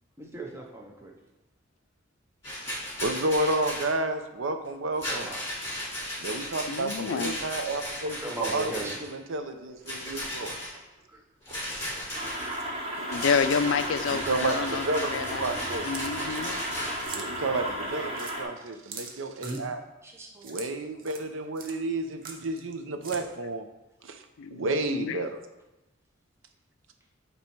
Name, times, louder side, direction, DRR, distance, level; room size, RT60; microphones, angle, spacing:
voice 1, 0.2-1.1 5.1-5.4 8.2-9.0 11.1-11.2 11.5-11.6 12.3-12.5 18.2-18.5 19.4-19.6 20.0-20.5, right 2 dB, 15° right, 0 dB, 0.6 m, -38 dB
Rattle, 2.4-3.9 4.9-9.1 9.8-10.7 11.5-12.6 13.1-17.1, left 1 dB, 15° left, 2.3 m, -36 dB
voice 2, 3.0-5.3 6.2-10.6 14.1-15.9 17.1-19.8 20.4-23.7 24.0-24.2 24.5-25.4, right 2 dB, 85° right, 7 dB, 0.6 m, -31 dB
voice 3, 6.7-7.3 13.1-15.5 15.8-16.6 24.4-25.2, left 6 dB, 75° left, 12 dB, 0.4 m, -29 dB
sound 1, 12.1-18.4, right 1 dB, 30° right, 1.1 m, -34 dB
sound 2, 15.9-16.7 17.0-17.3 17.7-17.8 18.2-18.4 18.9-19.6 20.4-20.7 21.0-21.3 21.6-21.8 22.2-22.7 23.0-23.2, right 5 dB, 45° right, 0.8 m, -42 dB
8.3 x 3.0 x 4.4 m, 1.0 s
head